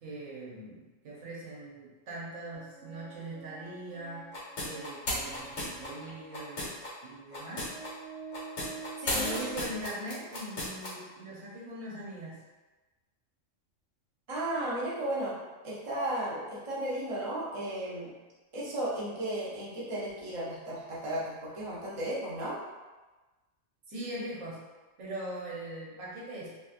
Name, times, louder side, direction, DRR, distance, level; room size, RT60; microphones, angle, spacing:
voice 1, 0.0-4.3 4.6-6.7 7.0-7.7 9.1-12.4 23.9-24.6 25.0-26.5, right 1 dB, 85° right, -6 dB, 1.3 m, -41 dB
Organ, 2.5-6.5 7.1-7.2 7.6-9.8, right 5 dB, 70° right, 1.0 m, -47 dB
sound 1, 4.3-6.9 7.3-7.9 8.3-10.9, left 1 dB, 90° left, 1.5 m, -34 dB
voice 2, 9.0-9.3 14.3-15.3 15.6-18.1 18.5-22.6, right 1 dB, 30° right, -7 dB, 0.7 m, -34 dB
3.2 x 3.0 x 2.4 m, 1.2 s
omnidirectional pair, 1.3 m